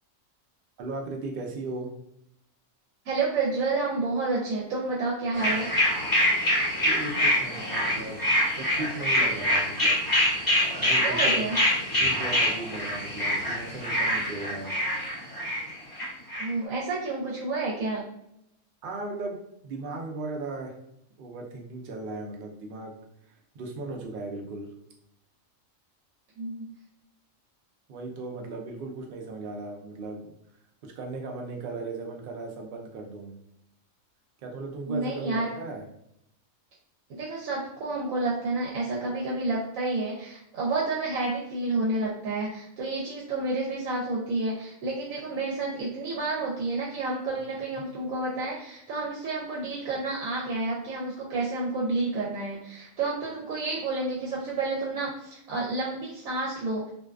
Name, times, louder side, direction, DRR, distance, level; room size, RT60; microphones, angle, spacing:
voice 1, 0.8-1.9 6.8-8.2 8.6-10.0 10.8-11.5 11.9-14.7 18.8-19.4 19.6-20.7 21.2-22.9 23.5-24.7 27.9-30.3 30.8-33.3 34.4-35.8 47.3-47.5, right 3 dB, 60° right, 1 dB, 0.6 m, -37 dB
voice 2, 3.0-5.7 11.0-11.6 16.4-18.0 26.4-26.8 34.9-35.5 37.1-56.9, right 3 dB, 90° right, -3 dB, 1.0 m, -30 dB
sound 1, 5.3-16.5, left 1 dB, 20° left, 0.7 m, -25 dB
2.5 x 2.3 x 2.2 m, 0.78 s
omnidirectional pair, 1.4 m